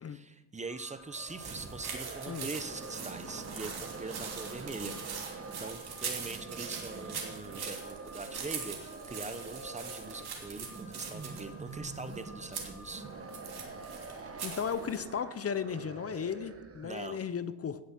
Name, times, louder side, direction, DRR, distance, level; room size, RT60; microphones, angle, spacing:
voice 1, 0.0-5.0 5.2-13.1 16.8-17.2, right 3 dB, 15° right, 10 dB, 0.8 m, -43 dB
Alarm, 0.6-14.7, right 1 dB, 70° left, 5.2 m, -54 dB
sound 1, 1.0-17.1, right 4 dB, 30° right, 1.3 m, -45 dB
sound 2, 1.3-15.0, right 6 dB, 60° right, 3.0 m, -43 dB
voice 2, 14.4-17.8, left 7 dB, 35° left, 13 dB, 0.7 m, -35 dB
17.0 x 7.9 x 5.9 m, 1.1 s
cardioid pair, 135°, 44 cm